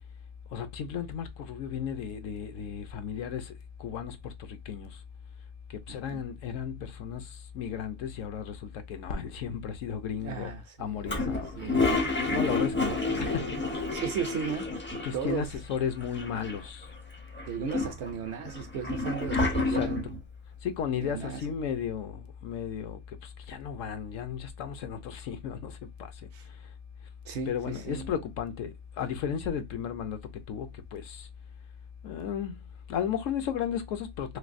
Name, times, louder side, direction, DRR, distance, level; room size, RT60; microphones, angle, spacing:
voice 1, 0.5-3.5 3.8-4.9 5.9-7.2 7.5-10.5 10.8-11.9 12.3-13.4 15.0-16.9 19.6-19.9 20.6-23.0 23.5-25.7 26.0-26.1 27.5-28.7 29.0-30.2 30.5-30.7 30.9-31.3 32.0-32.5 32.9-34.4, left 8 dB, 70° left, 1.0 m, -34 dB
voice 2, 5.9-6.2 10.2-11.9 12.9-13.4 13.9-14.7 15.1-15.5 17.5-20.2 21.0-21.4 26.3-26.5 27.3-28.1, right 6 dB, 65° right, 0.8 m, -36 dB
Toilet flush, 11.1-15.4 15.7-15.8 16.0-16.8 17.4-20.2, left 3 dB, 15° left, 0.4 m, -29 dB
3.2 x 3.0 x 2.5 m
omnidirectional pair, 1.4 m